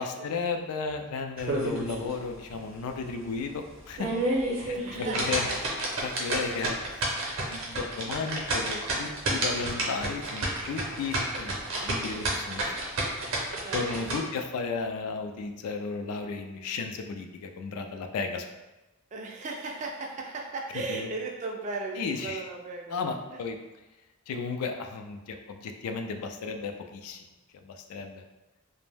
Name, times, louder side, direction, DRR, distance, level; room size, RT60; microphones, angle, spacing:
voice 1, 0.0-4.1 4.6-5.5 6.0-6.8 7.5-12.7 13.7-18.5 20.9-21.1 22.0-22.4 22.9-23.6 24.3-27.2 27.6-28.2, left 4 dB, 85° left, 5 dB, 0.3 m, -34 dB
sound 1, 1.4-2.1 2.5-2.6 3.1-3.2 3.8-14.2, right 2 dB, 60° right, 0.6 m, -30 dB
voice 2, 4.5-5.6 13.6-14.3 19.1-23.0, right 3 dB, 35° right, 1 dB, 0.3 m, -37 dB
2.5 x 2.0 x 3.3 m, 1.1 s
head